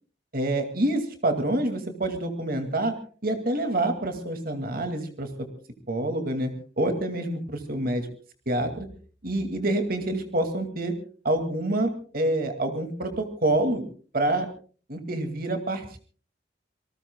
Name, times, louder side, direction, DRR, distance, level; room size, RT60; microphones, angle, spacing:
voice 1, 0.3-2.9 3.2-5.5 5.9-6.5 6.8-8.1 8.5-8.9 9.2-10.9 11.2-13.8 14.1-14.5 14.9-16.0, right 1 dB, 55° right, 6 dB, 2.4 m, -27 dB
27.5 x 19.5 x 2.3 m, 0.40 s
head